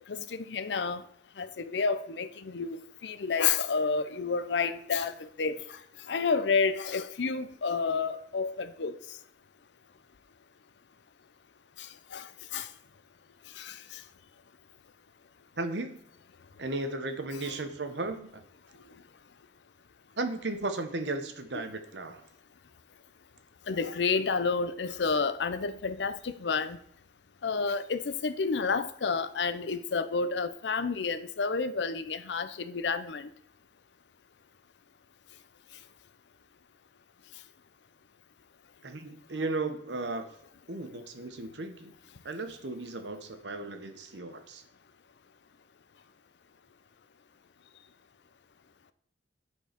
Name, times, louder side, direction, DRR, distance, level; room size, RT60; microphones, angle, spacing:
voice 1, 0.1-1.0 1.4-2.8 3.0-5.6 6.1-9.0 11.8-12.7 13.6-14.0 23.7-26.8 27.4-33.3, left 5 dB, 80° left, 0.6 m, -30 dB
voice 2, 15.6-16.0 16.6-18.4 20.2-22.2 38.8-40.3 40.7-41.9 42.2-44.6, right 2 dB, 80° right, 1.0 m, -35 dB
9.7 x 4.6 x 5.7 m
head